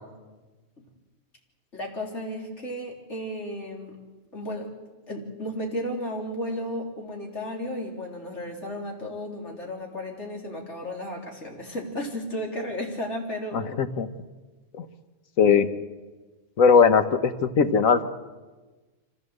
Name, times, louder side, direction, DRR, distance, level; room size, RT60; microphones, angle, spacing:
voice 1, 1.7-4.0 4.3-4.7 5.1-13.6, equal, 60° left, 0 dB, 3.9 m, -33 dB
voice 2, 13.5-14.1 14.8-14.9 15.4-15.7 16.6-18.0, left 6 dB, 85° left, 10 dB, 1.5 m, -19 dB
25.0 x 16.0 x 8.1 m, 1.3 s
omnidirectional pair, 1.4 m